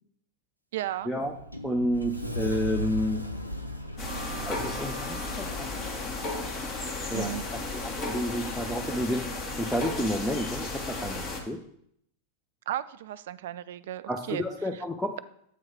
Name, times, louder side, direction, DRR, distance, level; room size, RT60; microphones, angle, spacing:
voice 1, 0.7-1.1 7.1-7.5 12.7-14.4, right 12 dB, 55° right, 15 dB, 0.3 m, -34 dB
Sliding door, 0.8-5.6, equal, 90° left, 0.6 m, -36 dB
voice 2, 1.6-3.2 4.4-5.7 7.1-11.6 14.1-15.2, equal, 5° left, 1 dB, 0.5 m, -30 dB
sound 1, 4.0-11.4, left 2 dB, 35° left, 1.4 m, -34 dB
8.2 x 3.1 x 5.8 m, 0.69 s
figure-of-eight pair, 90°, 0 cm